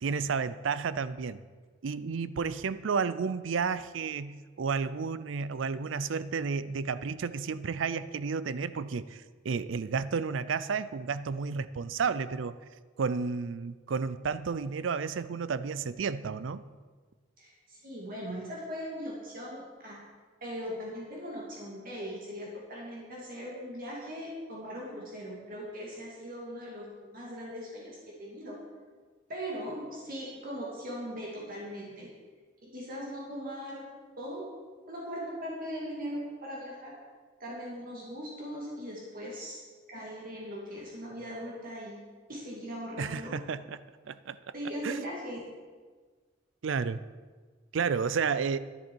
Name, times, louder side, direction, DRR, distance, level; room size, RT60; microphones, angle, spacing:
voice 1, 0.0-1.4 1.8-12.6 13.0-16.7 43.0-44.4 44.8-45.0 46.6-47.0 47.7-48.6, right 5 dB, 70° right, 15 dB, 0.4 m, -32 dB
voice 2, 17.4-20.0 20.4-28.6 29.3-32.1 32.6-33.9 34.2-34.5 34.9-37.0 37.4-39.6 39.9-42.0 42.3-43.4 44.5-45.5, equal, 50° right, -3 dB, 2.0 m, -39 dB
11.0 x 10.5 x 4.5 m, 1.5 s
head